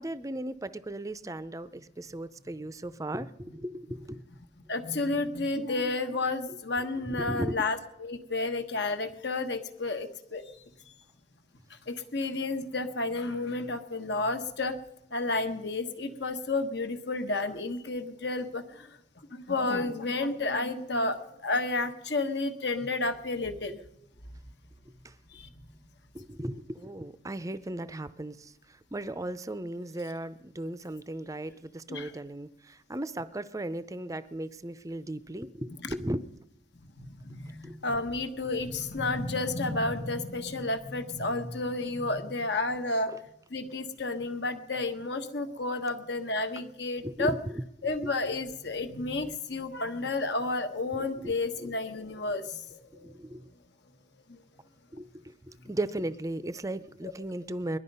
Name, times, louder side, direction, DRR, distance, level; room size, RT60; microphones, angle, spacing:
voice 1, 0.0-4.2 6.5-6.6 7.0-7.6 25.0-25.1 26.1-36.2 37.6-37.8 43.1-43.2 47.0-47.6 48.0-48.1 51.2-51.3 51.6-51.7 53.0-53.5 54.9-57.8, right 1 dB, 15° right, 14 dB, 0.5 m, -36 dB
voice 2, 4.7-10.4 11.7-14.7 15.1-18.9 19.3-23.8 25.3-25.6 31.9-32.1 37.0-43.1 43.5-47.3 47.8-53.1 54.3-54.4, left 2 dB, 60° left, 8 dB, 1.3 m, -31 dB
20.5 x 12.0 x 5.5 m, 0.84 s
head